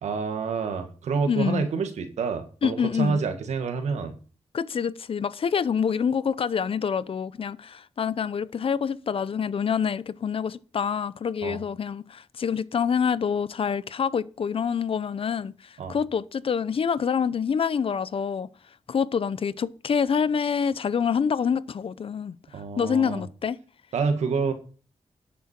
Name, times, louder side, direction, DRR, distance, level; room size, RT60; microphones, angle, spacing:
voice 1, 0.0-4.2 11.4-11.6 15.8-16.0 22.5-23.2 23.9-24.5, right 5 dB, 85° right, 1.7 m, -28 dB
voice 2, 1.3-1.7 2.6-3.2 4.5-15.5 15.9-18.5 18.9-22.3 22.8-23.6, left 7 dB, 55° left, 0.7 m, -26 dB
10.5 x 8.6 x 4.4 m
cardioid pair, 80°, 11 cm